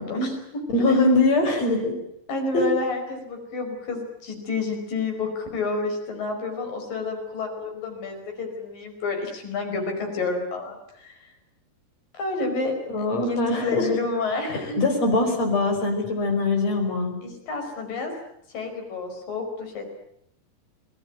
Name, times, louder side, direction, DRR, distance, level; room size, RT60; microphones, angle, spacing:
voice 1, 0.0-0.6 0.9-1.0 2.3-11.3 12.2-14.8 17.2-18.1 18.5-19.9, left 3 dB, 60° left, 4 dB, 6.6 m, -29 dB
voice 2, 0.7-1.9 2.5-2.7 12.9-13.9 14.8-17.2, left 2 dB, 40° left, 4 dB, 6.2 m, -22 dB
28.5 x 19.0 x 9.3 m, 0.74 s
omnidirectional pair, 4.6 m